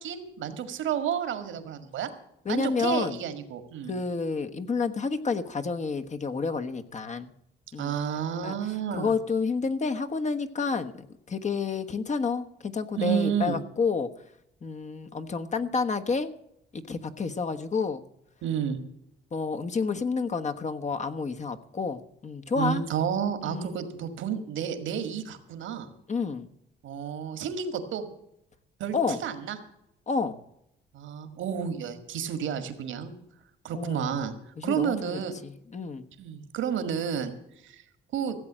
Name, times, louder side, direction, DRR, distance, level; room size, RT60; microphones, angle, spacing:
voice 1, 0.0-2.1 2.5-3.9 7.8-9.1 13.0-13.6 18.4-18.8 22.5-25.9 26.8-28.1 28.8-29.6 30.9-33.2 33.6-34.3 34.6-35.3 36.2-37.3 37.6-37.8 38.1-38.4, right 8 dB, 75° right, 9 dB, 1.9 m, -31 dB
voice 2, 2.4-3.2 3.9-7.3 7.7-7.9 8.4-8.6 8.9-14.1 14.6-16.3 16.7-18.0 19.3-22.8 23.5-23.8 26.1-26.5 28.9-29.2 30.1-30.4 33.7-34.1 34.6-36.1, left 4 dB, 35° left, 9 dB, 1.3 m, -30 dB
16.0 x 7.8 x 7.5 m, 0.79 s
cardioid pair, 90°, 20 cm